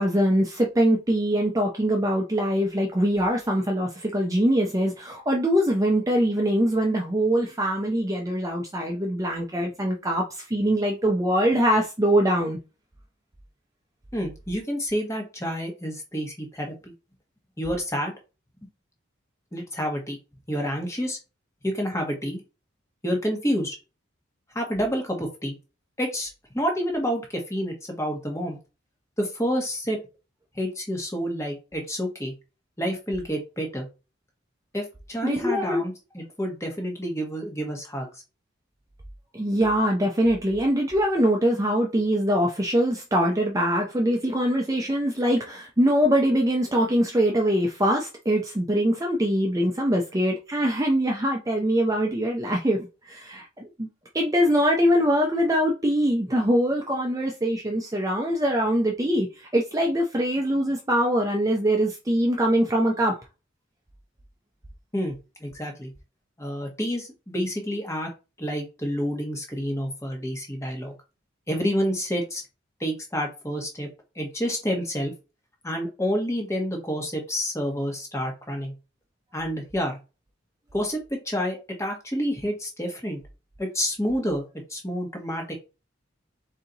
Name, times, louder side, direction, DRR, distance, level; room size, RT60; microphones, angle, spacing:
voice 1, 0.0-12.6 35.2-35.8 39.3-53.9 54.1-63.2, equal, 15° right, 0.6 m, -23 dB
voice 2, 14.1-16.9 17.6-18.1 19.5-20.2 20.5-21.2 21.6-22.4 23.0-23.7 24.5-25.5 26.0-26.3 26.5-28.6 29.2-30.0 30.5-32.3 32.8-33.9 34.7-38.1 64.9-65.2 65.4-65.9 66.4-68.1 68.4-70.9 71.5-72.4 72.8-73.9 74.1-75.1 75.6-78.7 79.3-80.0 80.7-81.0 81.2-83.2 83.6-84.4 84.7-85.5, equal, 15° left, 1.2 m, -28 dB
4.1 x 2.8 x 3.9 m
head